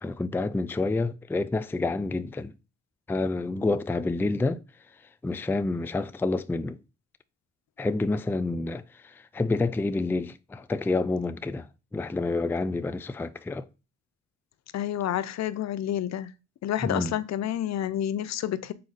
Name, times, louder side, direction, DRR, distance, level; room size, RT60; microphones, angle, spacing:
voice 1, 0.0-2.5 3.1-4.6 5.2-6.8 7.8-8.8 9.3-11.7 11.9-13.7 16.8-17.1, left 3 dB, 5° left, 0.4 m, -28 dB
voice 2, 14.7-16.3 16.6-18.7, left 11 dB, 60° left, 0.6 m, -29 dB
6.5 x 4.6 x 4.1 m
cardioid pair, 90°, 30 cm